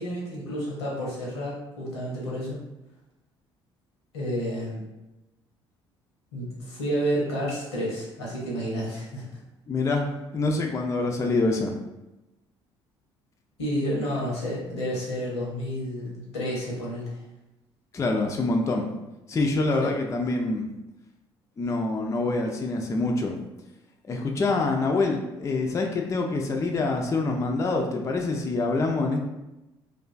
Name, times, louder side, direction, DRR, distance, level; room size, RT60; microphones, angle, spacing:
voice 1, 0.0-2.6 4.1-4.8 6.3-9.2 13.6-17.2 19.8-19.9, equal, 80° left, -4 dB, 0.7 m, -30 dB
voice 2, 9.7-11.7 17.9-19.0 19.3-20.7 21.6-23.4 24.1-29.2, left 3 dB, 20° left, 2 dB, 0.3 m, -26 dB
2.4 x 2.2 x 2.4 m, 0.98 s
hypercardioid pair, 55°, 14 cm